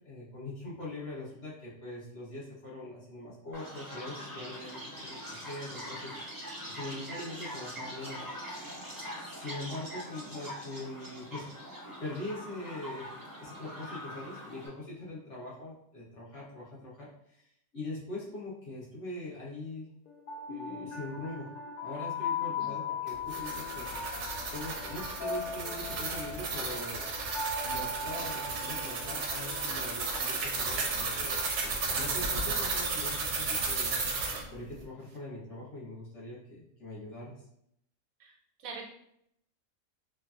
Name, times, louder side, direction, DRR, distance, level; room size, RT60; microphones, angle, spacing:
voice 1, 0.0-6.2 6.7-8.3 9.1-11.5 12.0-13.1 13.4-17.5 17.7-19.9 20.5-21.5 21.8-24.0 24.5-27.1 27.6-34.0 34.5-37.4, left 2 dB, 60° left, -7 dB, 1.2 m, -42 dB
Chirp tweet, 3.5-14.7, equal, 25° right, 0.4 m, -43 dB
sound 1, 20.1-31.1, left 4 dB, 85° left, 0.4 m, -39 dB
voice 2, 22.4-22.7 38.2-38.3 38.6-38.9, right 4 dB, 85° right, 1 dB, 1.1 m, -43 dB
sound 2, 23.1-34.4, right 4 dB, 65° right, 0.8 m, -33 dB
3.2 x 2.2 x 2.4 m, 0.74 s
omnidirectional pair, 1.4 m